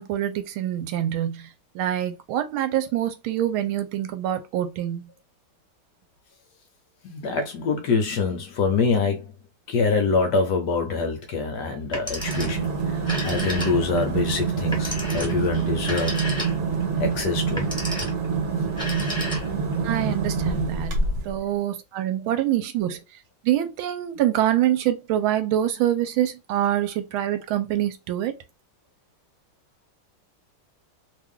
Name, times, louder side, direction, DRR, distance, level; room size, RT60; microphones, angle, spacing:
voice 1, 0.0-1.5 1.7-5.1 19.8-20.9 21.2-23.0 23.4-28.4, right 12 dB, 80° right, 1.5 m, -25 dB
voice 2, 7.0-9.3 9.7-16.2 17.0-17.6, left 4 dB, 70° left, 1.1 m, -25 dB
Telephone, 11.8-12.7 13.0-14.0 14.7-16.8 17.4-18.3 18.7-19.7, left 1 dB, 5° left, 1.2 m, -32 dB
sound 1, 12.2-21.4, right 5 dB, 60° right, 1.5 m, -26 dB
3.2 x 2.5 x 3.6 m
omnidirectional pair, 2.3 m